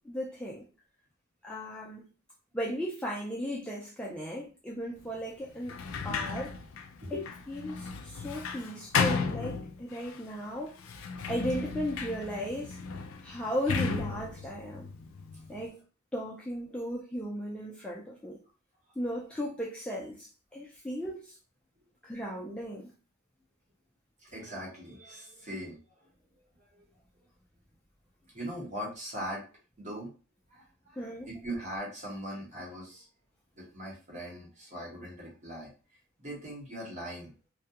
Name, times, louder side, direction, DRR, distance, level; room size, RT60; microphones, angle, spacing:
voice 1, 0.0-0.6 1.4-2.0 2.5-6.6 7.1-7.2 7.5-10.8 11.3-12.8 13.2-14.9 15.5-15.8 16.1-18.4 19.0-21.4 22.0-22.9 31.0-31.3, equal, 5° left, 0.3 m, -36 dB
Sliding door, 5.6-10.2 10.8-15.6, left 5 dB, 80° left, 0.4 m, -34 dB
voice 2, 24.2-25.8 26.7-26.8 28.3-29.5 29.8-30.1 30.5-33.1 33.6-35.7 36.2-37.3, equal, 35° right, 1.0 m, -40 dB
2.3 x 2.1 x 2.8 m
head